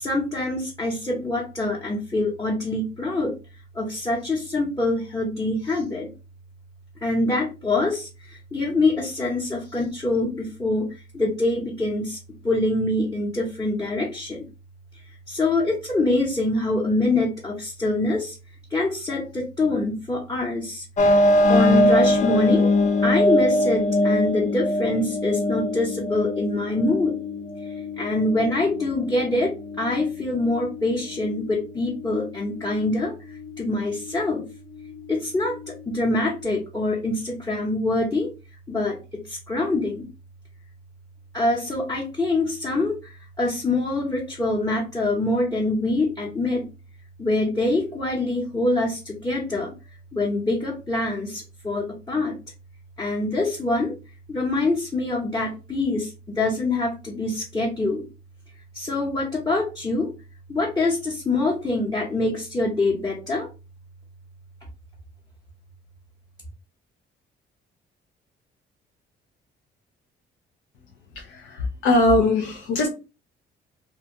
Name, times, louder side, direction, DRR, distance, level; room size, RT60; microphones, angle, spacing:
voice 1, 0.0-3.3 3.8-6.1 7.0-8.1 8.5-10.8 11.1-12.2 12.4-14.4 15.3-18.3 18.7-20.8 21.5-22.7 23.0-27.1 28.0-29.5 29.8-33.1 33.6-34.4 35.1-35.6 35.9-38.3 38.7-39.0 39.5-40.0 41.3-43.0 43.4-46.6 47.2-49.7 50.1-52.3 53.0-53.9 54.3-56.1 56.4-58.0 58.8-60.1 60.5-63.5, left 2 dB, 20° left, -4 dB, 0.8 m, -24 dB
sound 1, 21.0-36.4, left 1 dB, 40° left, 0.5 m, -24 dB
voice 2, 71.2-72.9, left 2 dB, 85° left, 1 dB, 0.6 m, -21 dB
2.5 x 2.2 x 2.8 m, 0.31 s
cardioid pair, 90°, 20 cm